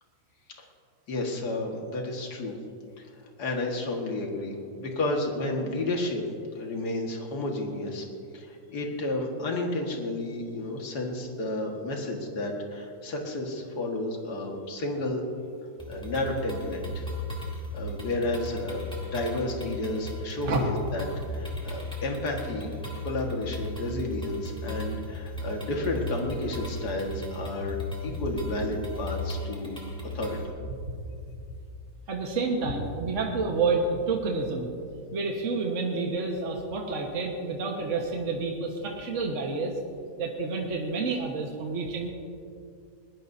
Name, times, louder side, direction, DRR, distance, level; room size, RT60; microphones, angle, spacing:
voice 1, 1.1-2.6 3.0-3.1 3.4-6.2 6.5-8.1 8.3-15.2 15.9-17.1 17.7-21.0 21.3-22.7 23.0-27.8 28.0-29.8 30.1-30.4, left 2 dB, 65° left, 1 dB, 2.3 m, -31 dB
sound 1, 15.8-30.4, left 1 dB, 5° left, 2.8 m, -36 dB
voice 2, 32.1-34.7 35.1-39.7 40.2-42.1, right 3 dB, 45° right, 0 dB, 1.7 m, -29 dB
21.5 x 19.5 x 2.7 m, 2.4 s
omnidirectional pair, 1.9 m